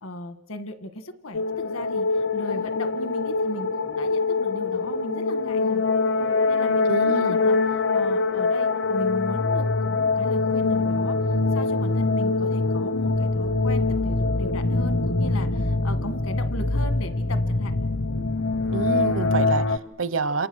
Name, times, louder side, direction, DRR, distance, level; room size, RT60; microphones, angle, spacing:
voice 1, 0.0-5.8 6.2-7.6 7.9-17.7, left 1 dB, 75° left, 10 dB, 1.8 m, -37 dB
sound 1, 1.3-19.8, left 3 dB, 60° left, 0.9 m, -24 dB
voice 2, 6.9-7.4 18.7-20.5, right 4 dB, 65° right, 16 dB, 0.9 m, -27 dB
28.0 x 27.0 x 6.4 m, 0.99 s
head